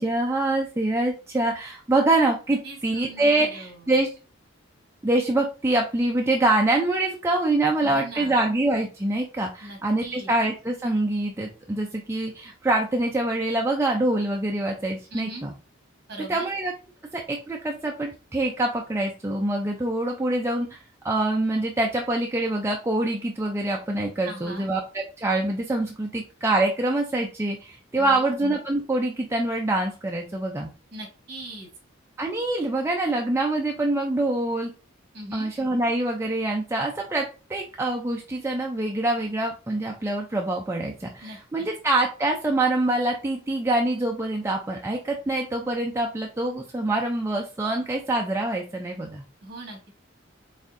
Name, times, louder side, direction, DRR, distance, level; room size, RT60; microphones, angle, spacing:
voice 1, 0.0-4.1 5.0-15.5 16.3-16.7 17.1-20.8 21.0-30.7 32.2-34.7 35.3-49.2, right 2 dB, 15° right, 1 dB, 0.3 m, -25 dB
voice 2, 2.6-3.9 7.8-8.5 9.6-10.3 15.1-15.5 16.1-16.5 24.2-24.7 27.9-28.3 30.9-31.7 35.1-35.5 41.2-41.7 49.4-49.9, right 1 dB, 50° right, 1 dB, 1.6 m, -40 dB
4.1 x 3.5 x 2.5 m, 0.33 s
head